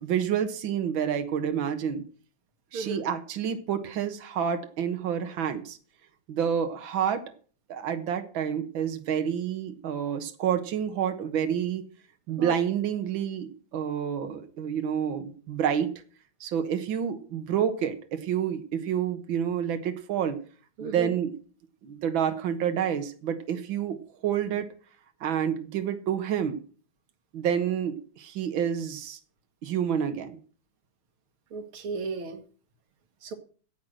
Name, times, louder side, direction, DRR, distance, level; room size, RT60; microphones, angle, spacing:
voice 1, 0.0-2.0 2.7-5.8 6.3-7.2 7.7-11.8 12.3-15.9 16.4-20.4 20.8-21.3 21.8-24.7 25.2-26.6 27.3-29.2 29.6-30.4, right 8 dB, 70° right, 8 dB, 2.0 m, -29 dB
voice 2, 2.7-3.1 12.3-12.6 20.8-21.1 31.5-32.4 33.2-33.3, right 4 dB, 90° right, 6 dB, 2.5 m, -34 dB
10.5 x 8.2 x 7.7 m, 0.42 s
omnidirectional pair, 2.2 m